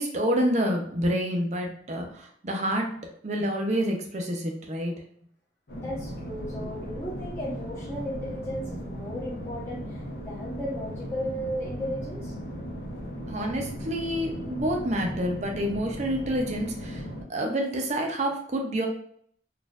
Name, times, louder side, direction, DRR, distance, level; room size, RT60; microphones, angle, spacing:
voice 1, 0.0-2.9 3.2-4.9 13.3-17.0 17.3-18.9, equal, 40° right, 1 dB, 0.6 m, -28 dB
sound 1, 5.7-17.2, equal, 65° left, 0.8 m, -37 dB
voice 2, 5.7-10.0 10.3-12.3, equal, 15° left, -9 dB, 0.9 m, -35 dB
4.1 x 2.5 x 2.4 m, 0.63 s
head